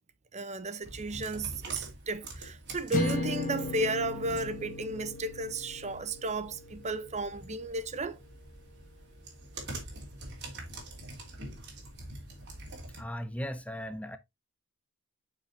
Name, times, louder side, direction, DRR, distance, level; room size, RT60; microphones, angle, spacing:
voice 1, 0.3-8.2, right 2 dB, 30° right, 0.7 m, -34 dB
sound 1, 0.8-13.0, right 2 dB, 55° right, 3.2 m, -46 dB
sound 2, 2.9-7.3, left 2 dB, 40° left, 2.1 m, -36 dB
voice 2, 12.9-14.2, equal, 5° left, 0.6 m, -37 dB
9.3 x 5.7 x 2.7 m
head